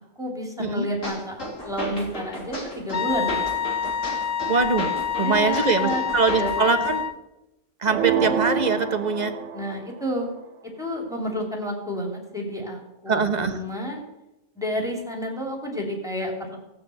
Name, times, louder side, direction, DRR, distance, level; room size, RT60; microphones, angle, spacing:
voice 1, 0.0-3.4 5.2-6.9 9.5-10.3 10.8-14.0 14.5-16.6, equal, ahead, 0 dB, 3.3 m, -30 dB
sound 1, 1.0-7.0, left 1 dB, 75° left, 3.9 m, -34 dB
Wind instrument woodwind instrument, 2.9-7.2, left 8 dB, 55° left, 0.9 m, -27 dB
voice 2, 4.5-4.9 5.2-7.0 7.8-9.3 13.1-13.6, right 5 dB, 35° right, 8 dB, 1.2 m, -22 dB
sound 2, 7.9-9.9, right 7 dB, 70° right, 1.1 m, -27 dB
17.0 x 6.9 x 7.9 m, 0.94 s
omnidirectional pair, 1.3 m